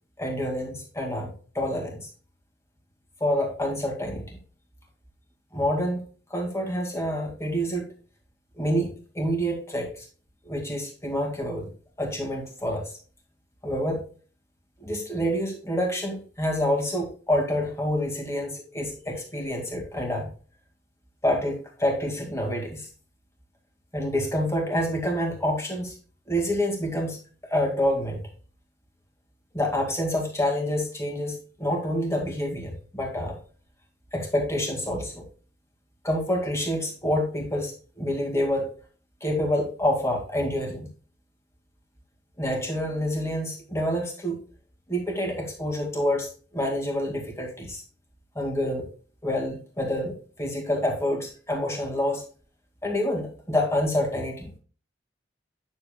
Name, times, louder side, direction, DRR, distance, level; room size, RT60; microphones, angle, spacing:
voice 1, 0.2-2.1 3.2-4.4 5.5-6.0 6.3-7.9 8.6-10.1 10.5-11.7 12.0-12.9 13.6-14.0 14.8-20.3 21.2-22.9 23.9-26.0 26.3-27.2 27.5-28.3 29.5-33.4 34.1-35.2 36.0-38.7 39.2-40.9 42.4-44.4 44.9-47.8 48.4-48.9 49.2-52.2 52.8-54.5, equal, 15° left, 1 dB, 2.0 m, -27 dB
9.5 x 7.1 x 2.2 m, 0.39 s
head